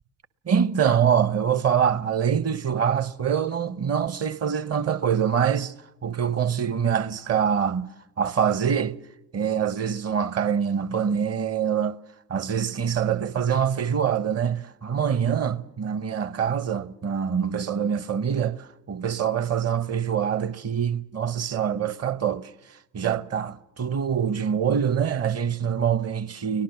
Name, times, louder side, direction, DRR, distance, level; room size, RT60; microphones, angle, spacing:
voice 1, 0.5-5.7 6.0-7.9 8.2-9.0 9.3-12.0 12.3-22.5 22.9-26.6, right 8 dB, 30° right, 1.0 m, -24 dB
24.0 x 18.5 x 6.3 m
figure-of-eight pair, 60°, 49 cm